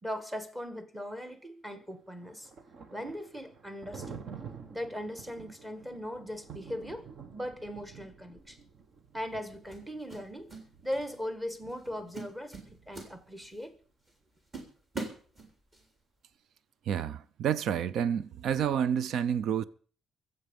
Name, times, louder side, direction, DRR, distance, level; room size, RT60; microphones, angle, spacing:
voice 1, 0.0-2.5 2.9-4.2 4.7-7.1 7.3-8.7 9.1-10.5 10.8-13.8, equal, 10° right, 1.5 m, -39 dB
Thunder, 1.7-13.5, right 6 dB, 50° right, 1.4 m, -50 dB
sound 1, 8.4-8.6 9.7-10.7 10.9-11.2 11.7-11.9 12.1-13.6 14.1-14.2 14.5-15.8, right 3 dB, 25° right, 3.5 m, -42 dB
voice 2, 16.9-19.6, right 8 dB, 70° right, 0.7 m, -29 dB
23.5 x 8.0 x 5.3 m
cardioid pair, 155°, 0 cm